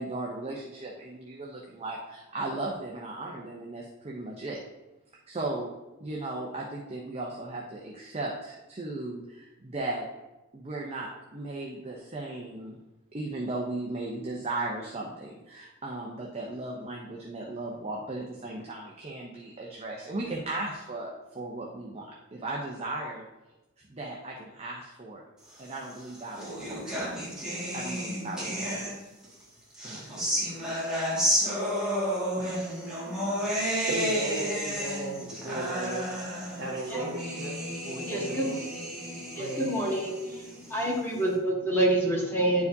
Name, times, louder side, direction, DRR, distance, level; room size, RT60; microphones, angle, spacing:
voice 1, 0.0-4.6 5.3-5.7 6.0-10.1 10.5-12.8 13.1-23.2 23.9-25.2 25.6-27.0 27.7-28.8 29.8-30.1, right 2 dB, 30° right, -2 dB, 0.7 m, -36 dB
sound 1, 25.8-29.3 29.7-41.2, equal, 5° right, 1.9 m, -32 dB
voice 2, 33.9-36.1 36.6-37.6 37.8-38.6 39.3-39.7, right 2 dB, 55° right, -3 dB, 1.7 m, -35 dB
voice 3, 38.0-38.5 39.3-40.1 40.7-42.7, right 1 dB, 10° left, -5 dB, 1.6 m, -26 dB
10.5 x 4.8 x 2.7 m, 1.0 s
head